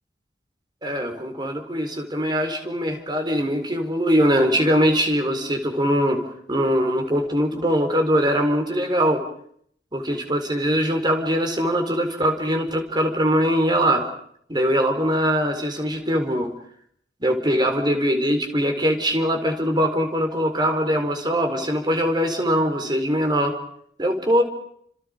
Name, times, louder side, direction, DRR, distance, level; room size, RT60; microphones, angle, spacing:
voice 1, 0.8-9.2 9.9-14.1 14.5-16.5 17.2-23.6 24.0-24.4, equal, 25° right, 5 dB, 4.2 m, -22 dB
29.5 x 28.0 x 5.1 m, 0.66 s
head